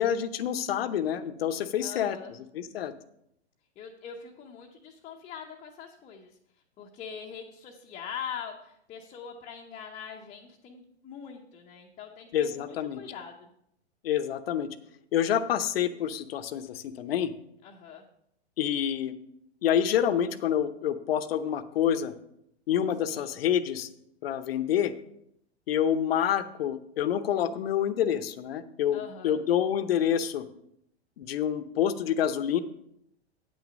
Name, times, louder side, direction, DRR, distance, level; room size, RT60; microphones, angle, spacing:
voice 1, 0.0-2.2 2.5-2.9 12.3-13.0 14.0-14.8 15.1-17.3 18.6-19.2 19.6-22.1 22.7-23.9 24.2-24.9 25.7-30.4 31.2-32.6, left 9 dB, 60° left, 12 dB, 0.8 m, -27 dB
voice 2, 1.8-2.3 3.8-6.4 6.8-13.5 17.6-18.0 23.1-23.3 28.9-29.4, left 7 dB, 20° left, 0 dB, 0.7 m, -42 dB
8.6 x 6.3 x 5.1 m, 0.75 s
hypercardioid pair, 115°, 33 cm